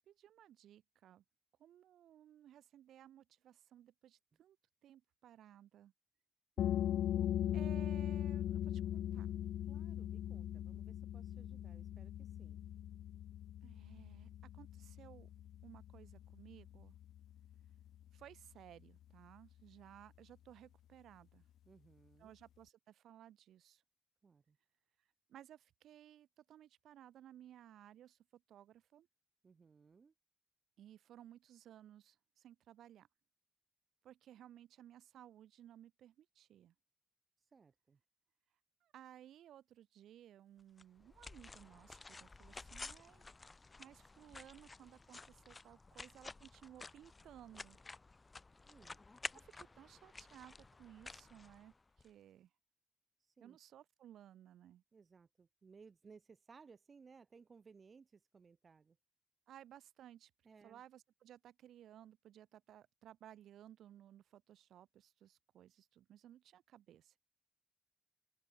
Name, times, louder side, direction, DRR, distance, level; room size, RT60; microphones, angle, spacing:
voice 1, 0.1-1.2 1.6-4.6 4.8-5.9 7.5-9.3 13.6-15.3 15.6-16.9 18.1-21.4 22.2-23.8 25.3-29.1 30.8-33.1 34.0-36.7 38.8-43.3 43.8-47.8 49.3-51.7 52.0-52.5 53.4-54.8 59.5-60.3 60.6-67.2, right 11 dB, 85° right, 3.9 m, -59 dB
sound 1, 6.6-17.9, left 11 dB, 85° left, 1.0 m, -40 dB
voice 2, 6.6-7.6 9.7-12.6 21.7-22.3 24.2-24.6 29.4-30.1 37.5-38.0 48.6-49.0 53.2-53.6 54.9-59.0 60.4-60.8, right 5 dB, 40° right, 2.3 m, -62 dB
sound 2, 40.8-52.1, left 3 dB, 25° left, 3.8 m, -52 dB
open air
cardioid pair, 105°, 0 cm